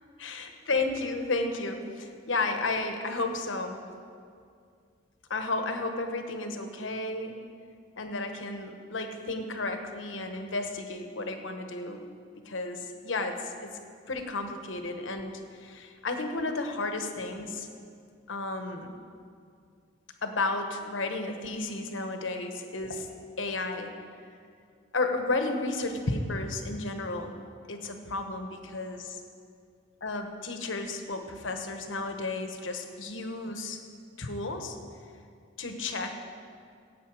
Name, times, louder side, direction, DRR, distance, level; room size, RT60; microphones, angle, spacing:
voice 1, 0.2-3.8 5.3-7.4 8.0-12.0 12.4-13.7 14.1-17.7 18.3-19.0 20.2-23.1 23.4-24.0 24.9-27.3 27.7-29.2 30.0-33.8 34.2-34.8 35.6-36.1, left 3 dB, 75° left, 5 dB, 1.2 m, -33 dB
16.5 x 8.2 x 4.9 m, 2.3 s
head